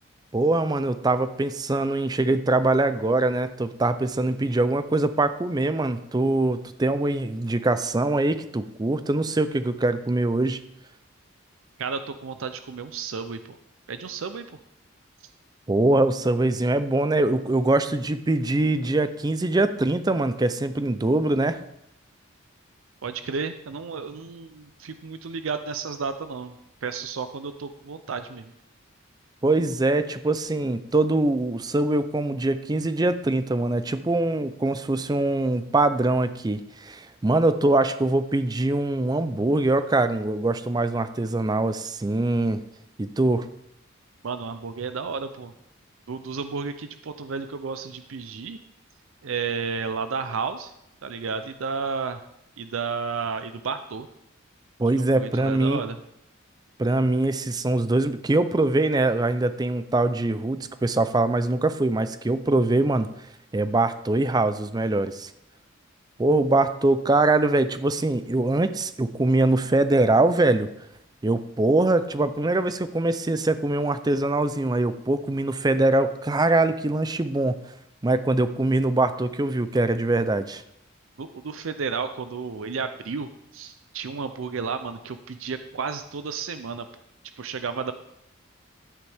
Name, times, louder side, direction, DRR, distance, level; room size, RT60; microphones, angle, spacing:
voice 1, 0.3-10.6 15.7-21.6 29.4-42.6 43.0-43.5 54.8-55.8 56.8-63.1 63.5-65.3 66.2-70.7 71.2-77.6 78.0-80.6, right 2 dB, 20° right, 12 dB, 0.4 m, -23 dB
voice 2, 11.8-13.6 13.9-14.4 23.0-26.5 26.8-28.5 44.2-45.5 46.1-48.6 49.2-50.7 51.0-52.2 52.6-54.1 55.1-56.0 81.2-86.9 87.4-87.9, right 5 dB, 75° right, 9 dB, 0.5 m, -32 dB
11.5 x 9.7 x 3.5 m, 0.77 s
head